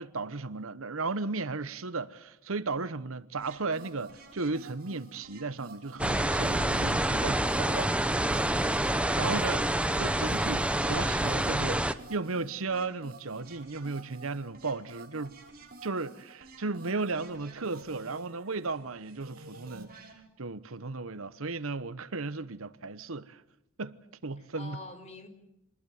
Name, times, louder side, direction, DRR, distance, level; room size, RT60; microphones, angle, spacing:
voice 1, 0.0-7.9 9.2-9.6 10.0-15.4 15.8-19.9 20.4-23.4 23.8-24.0 24.2-24.8, right 3 dB, 70° right, 1.0 m, -35 dB
sound 1, 3.4-20.1, right 3 dB, 45° right, 6.5 m, -51 dB
sound 2, 6.0-11.9, right 1 dB, 5° right, 0.9 m, -27 dB
voice 2, 8.9-9.6 24.4-25.3, left 2 dB, 30° left, 4.6 m, -47 dB
27.0 x 20.5 x 9.4 m
head